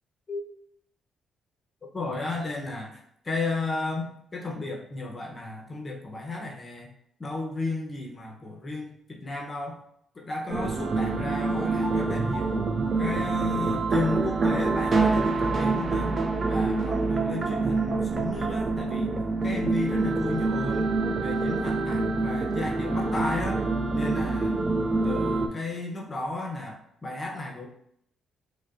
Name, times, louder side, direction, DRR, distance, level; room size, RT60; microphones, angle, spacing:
voice 1, 1.9-6.9 7.2-9.8 10.1-12.6 13.0-16.1 16.5-19.1 19.4-20.9 21.2-23.6 23.9-24.6 25.0-27.7, left 3 dB, 30° left, 0 dB, 0.6 m, -34 dB
sound 1, 10.5-25.5, right 3 dB, 35° right, 0.4 m, -26 dB
4.6 x 2.1 x 2.4 m, 0.70 s
cardioid pair, 90°, 0 cm